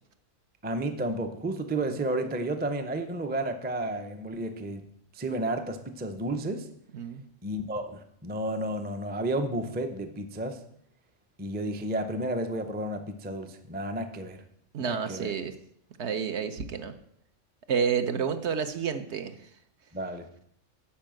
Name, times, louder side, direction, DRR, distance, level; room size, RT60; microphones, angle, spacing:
voice 1, 0.6-4.8 5.1-6.7 7.4-10.6 11.4-14.4 14.8-15.3 19.9-20.3, right 1 dB, 10° right, 7 dB, 0.4 m, -32 dB
voice 2, 14.7-15.5 16.0-16.9 17.7-19.5, right 6 dB, 60° right, 8 dB, 1.0 m, -30 dB
10.5 x 4.6 x 7.6 m, 0.71 s
omnidirectional pair, 1.3 m